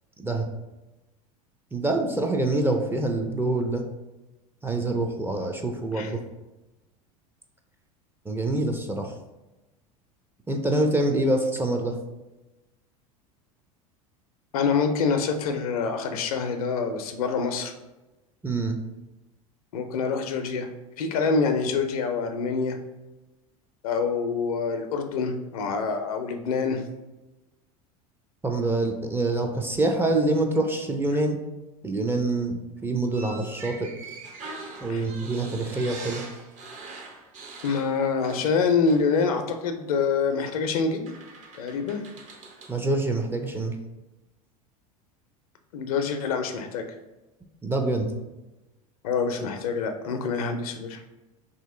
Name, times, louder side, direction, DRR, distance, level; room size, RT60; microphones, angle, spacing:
voice 1, 0.2-0.5 1.7-3.8 4.6-6.2 8.3-9.1 10.5-12.0 18.4-18.8 28.4-31.4 31.8-33.9 34.8-36.2 42.7-43.8 47.6-48.1, right 2 dB, 10° right, 3 dB, 0.4 m, -25 dB
voice 2, 14.5-17.7 19.7-20.7 21.0-22.8 23.8-26.8 34.9-35.0 37.6-41.0 41.6-42.0 45.7-47.0 49.0-51.0, left 5 dB, 80° left, 6 dB, 0.5 m, -26 dB
sound 1, 33.1-38.6 38.9-39.1 40.3-40.5 41.1-42.8, right 3 dB, 40° right, 0.7 m, -43 dB
2.9 x 2.8 x 3.7 m, 1.0 s
hypercardioid pair, 90°, 19 cm